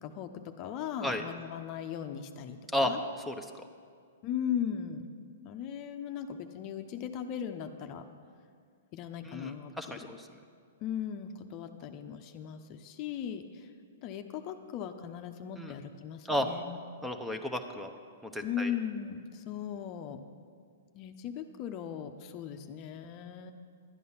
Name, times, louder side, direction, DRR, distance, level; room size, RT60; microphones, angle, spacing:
voice 1, 0.0-3.0 4.2-5.0 5.4-8.0 8.9-10.0 10.8-13.7 14.0-16.8 18.4-20.2 20.9-23.5, left 8 dB, 40° left, 7 dB, 0.7 m, -38 dB
voice 2, 3.3-3.7 9.2-10.3 15.6-15.7 16.2-16.5 17.0-17.9 18.2-18.7, left 1 dB, 5° right, 6 dB, 0.8 m, -33 dB
11.5 x 9.3 x 5.6 m, 2.1 s
hypercardioid pair, 120°, 0 cm